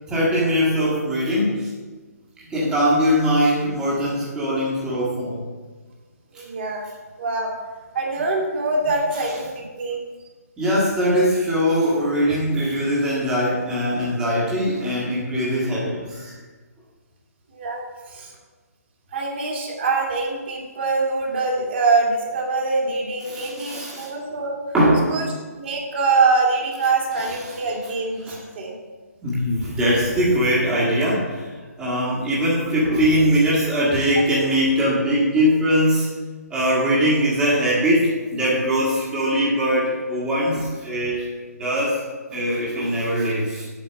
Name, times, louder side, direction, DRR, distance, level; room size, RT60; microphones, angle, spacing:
voice 1, 0.1-1.7 2.4-5.4 6.3-6.4 10.6-16.3 23.2-24.1 24.7-25.2 27.2-27.6 28.3-28.4 29.2-31.5 31.8-36.1 36.5-41.3 41.6-42.0 42.3-43.7, equal, 10° right, -8 dB, 1.6 m, -21 dB
voice 2, 6.3-6.9 7.2-7.5 7.9-10.0 17.5-17.8 18.1-18.3 19.1-24.6 25.1-25.3 25.6-28.7, right 3 dB, 40° right, -1 dB, 2.2 m, -24 dB
8.4 x 5.1 x 6.9 m, 1.4 s
figure-of-eight pair, 135°, 9 cm